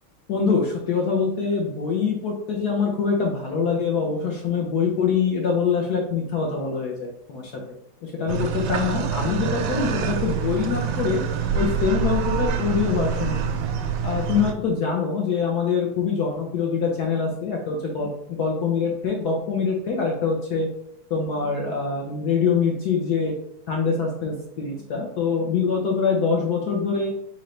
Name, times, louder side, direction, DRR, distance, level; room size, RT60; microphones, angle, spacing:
voice 1, 0.3-7.6 8.0-11.2 11.5-13.6 14.0-20.7 21.1-23.3 23.7-27.1, left 5 dB, 65° left, -1 dB, 1.0 m, -24 dB
sound 1, 8.3-14.5, right 6 dB, 80° right, 1.0 m, -26 dB
4.3 x 3.8 x 3.2 m, 0.72 s
omnidirectional pair, 2.4 m